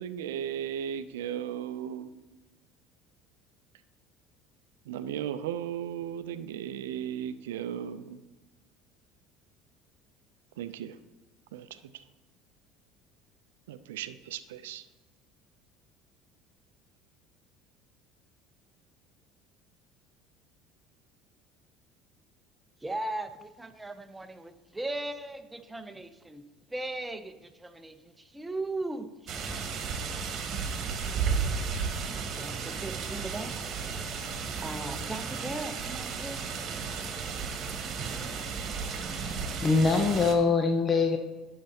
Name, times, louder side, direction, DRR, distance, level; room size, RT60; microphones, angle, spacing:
voice 1, 0.0-2.1 4.9-8.2 10.6-11.0 11.5-12.0 13.7-14.8, right 9 dB, 85° right, 0.4 m, -36 dB
voice 2, 22.8-26.4 26.7-29.1 30.0-30.4 32.4-33.7 34.6-36.4, right 2 dB, 10° right, 0.7 m, -38 dB
sound 1, 29.3-40.3, right 5 dB, 50° right, 1.3 m, -34 dB
voice 3, 39.6-41.2, left 4 dB, 35° left, 0.7 m, -23 dB
10.5 x 6.6 x 2.9 m
hypercardioid pair, 80°, 0 cm